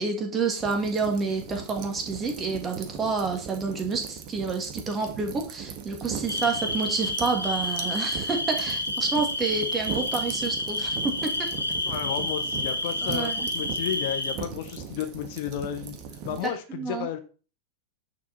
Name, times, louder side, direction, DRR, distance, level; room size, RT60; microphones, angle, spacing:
voice 1, 0.0-11.5 13.0-13.5 16.3-16.4 16.7-17.1, right 4 dB, 20° right, 3 dB, 2.4 m, -29 dB
sound 1, 0.6-16.5, right 7 dB, 40° right, 1.7 m, -39 dB
sound 2, 6.3-14.3, left 1 dB, 85° left, 1.2 m, -30 dB
voice 2, 11.8-15.9 16.2-17.2, left 10 dB, 50° left, 8 dB, 1.3 m, -33 dB
10.0 x 6.0 x 4.3 m, 0.36 s
figure-of-eight pair, 90°, 0 cm